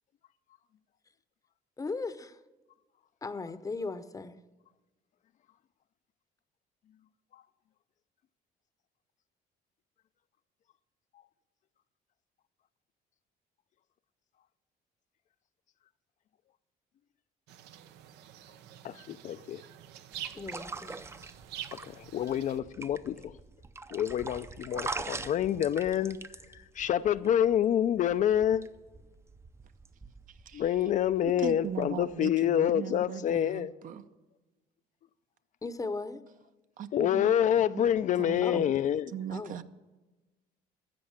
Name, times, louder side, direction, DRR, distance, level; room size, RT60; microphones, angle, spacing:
voice 1, 1.8-2.4 3.2-4.4 20.3-21.0 35.6-36.2 38.4-38.6 39.3-39.6, left 3 dB, 20° left, 0.7 m, -37 dB
sound 1, 17.5-22.6, right 11 dB, 85° right, 0.7 m, -46 dB
voice 2, 18.8-19.6 21.8-23.4 23.9-26.2 26.5-28.7 30.5-33.7 36.9-39.1, left 10 dB, 50° left, 0.4 m, -27 dB
sound 2, 20.1-32.1, right 3 dB, 15° right, 0.5 m, -44 dB
voice 3, 31.4-34.0 36.8-37.3 37.7-37.8 38.2-38.7 39.1-39.6, right 8 dB, 55° right, 0.7 m, -39 dB
13.0 x 7.8 x 7.2 m
cardioid pair, 110°, 17 cm